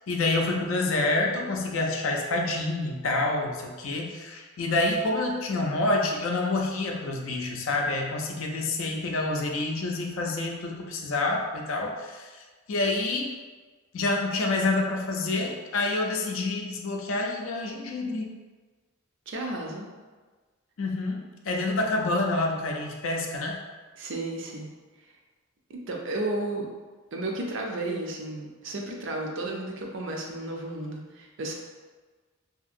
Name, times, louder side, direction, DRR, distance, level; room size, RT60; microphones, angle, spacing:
voice 1, 0.1-13.3 13.9-18.3 20.8-23.6, left 2 dB, 65° left, 1 dB, 0.4 m, -28 dB
voice 2, 19.3-19.9 24.0-24.7 25.7-26.7 27.1-31.5, right 2 dB, 60° right, 0 dB, 0.4 m, -33 dB
2.7 x 2.7 x 2.4 m, 1.4 s
head